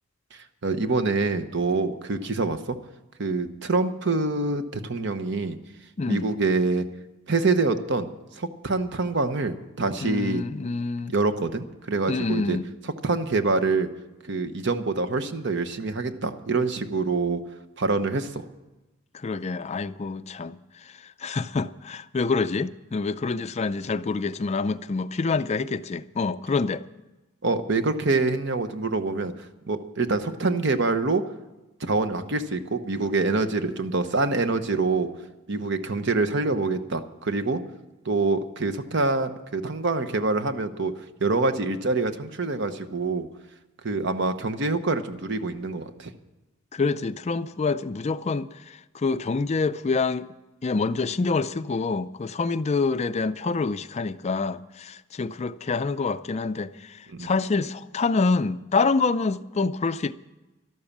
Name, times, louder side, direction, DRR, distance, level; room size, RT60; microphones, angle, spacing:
voice 1, 0.3-2.8 3.2-5.6 6.1-6.9 7.3-8.1 8.3-10.4 11.1-12.6 13.0-13.9 14.3-17.4 17.8-18.4 27.4-29.3 29.7-31.2 31.8-35.1 35.5-37.6 38.0-43.3 43.8-46.1 57.1-57.3, right 3 dB, 55° right, 1.0 m, -25 dB
voice 2, 6.0-6.3 10.0-11.1 12.1-12.7 19.1-26.8 46.7-50.3 50.6-60.1, left 4 dB, 30° left, 0.4 m, -27 dB
12.5 x 12.0 x 7.2 m
head